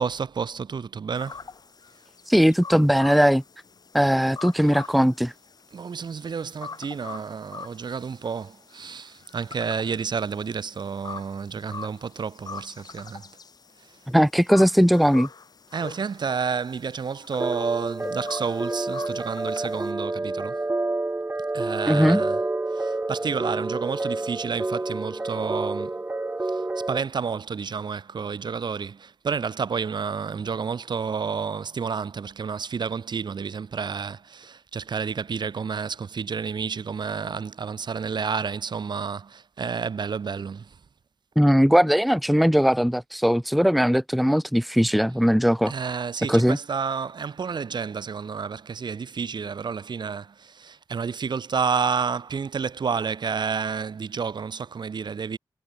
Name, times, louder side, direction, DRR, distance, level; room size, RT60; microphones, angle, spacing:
voice 1, 0.0-1.4 5.7-13.2 15.7-20.6 21.5-22.4 22.7-26.0 26.4-40.8 45.7-55.4, right 6 dB, 70° right, 2.7 m, -30 dB
sound 1, 1.1-19.9, left 5 dB, 55° left, 1.7 m, -44 dB
voice 2, 2.3-3.4 3.9-5.3 14.1-15.3 21.9-22.2 41.4-45.7 46.3-46.6, equal, ahead, 0.9 m, -19 dB
sound 2, 17.4-27.0, right 2 dB, 25° right, 1.1 m, -29 dB
wide cardioid pair, 95°, 8 cm